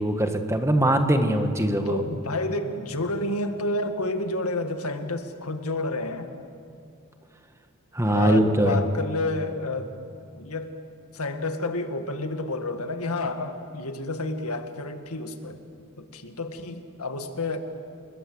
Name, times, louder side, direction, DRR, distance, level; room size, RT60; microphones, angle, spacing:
voice 1, 0.0-2.0 7.9-8.8, right 1 dB, 15° right, 6 dB, 1.6 m, -22 dB
voice 2, 1.9-6.3 8.1-9.9 10.3-10.8 11.1-15.6 16.0-17.6, left 2 dB, 90° left, 7 dB, 2.0 m, -30 dB
29.0 x 21.0 x 8.0 m, 2.4 s
head